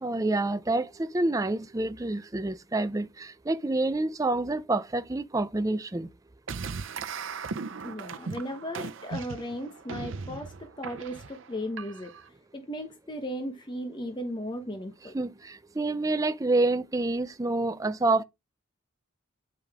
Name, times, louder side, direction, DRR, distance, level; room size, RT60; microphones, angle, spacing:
voice 1, 0.0-6.1 15.1-18.2, right 2 dB, 15° right, 0.4 m, -28 dB
sound 1, 6.5-12.3, right 5 dB, 70° right, 0.7 m, -38 dB
voice 2, 7.8-12.2 12.5-15.1, equal, 20° left, 0.9 m, -36 dB
9.0 x 5.2 x 3.6 m
head